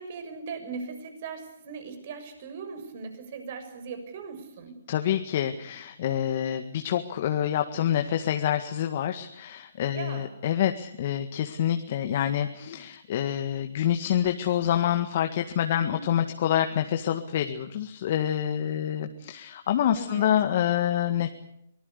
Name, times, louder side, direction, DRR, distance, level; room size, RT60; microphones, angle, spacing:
voice 1, 0.0-4.8 9.9-10.3 15.8-16.1 19.9-20.3, right 5 dB, 50° right, 8 dB, 6.9 m, -39 dB
voice 2, 4.9-21.3, left 10 dB, 50° left, 7 dB, 1.9 m, -27 dB
24.5 x 20.0 x 8.4 m, 0.76 s
figure-of-eight pair, 135°, 0 cm